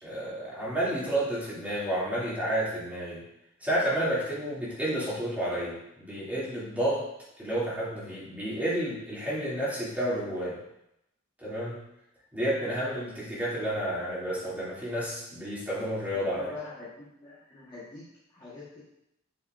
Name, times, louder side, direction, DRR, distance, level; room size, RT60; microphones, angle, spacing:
voice 1, 0.0-3.2 3.6-7.0 7.4-10.6 11.4-11.8 12.3-16.4, right 1 dB, 10° right, -9 dB, 2.8 m, -30 dB
voice 2, 16.1-18.8, left 3 dB, 20° left, -9 dB, 1.6 m, -44 dB
7.9 x 6.6 x 2.7 m, 0.84 s
head